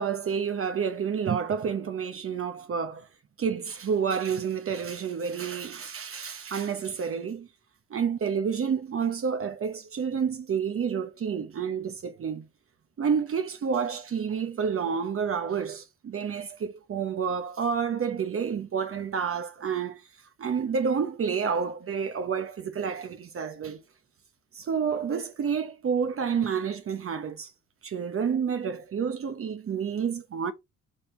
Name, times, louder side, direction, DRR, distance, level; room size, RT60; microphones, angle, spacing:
voice 1, 0.0-3.1 3.4-7.5 7.9-12.4 13.0-20.1 20.4-23.8 24.5-27.5 27.8-30.5, right 6 dB, 45° right, 1.0 m, -29 dB
6.5 x 3.5 x 5.3 m
cardioid pair, 90°, 30 cm